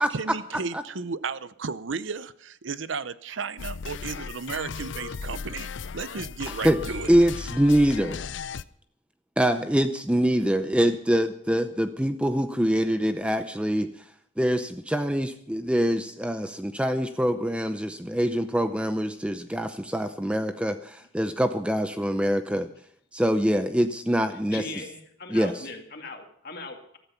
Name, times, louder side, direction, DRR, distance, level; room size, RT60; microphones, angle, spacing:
voice 1, 0.1-7.1, right 5 dB, 75° right, 15 dB, 0.7 m, -34 dB
sound 1, 3.6-8.6, left 5 dB, 75° left, 0.5 m, -36 dB
voice 2, 7.1-8.2 9.4-13.9 14.4-22.7 23.1-24.7 25.3-25.7, equal, 5° right, 9 dB, 0.6 m, -24 dB
voice 3, 24.5-27.0, left 3 dB, 50° left, 4 dB, 2.4 m, -39 dB
15.0 x 13.5 x 5.8 m, 0.65 s
head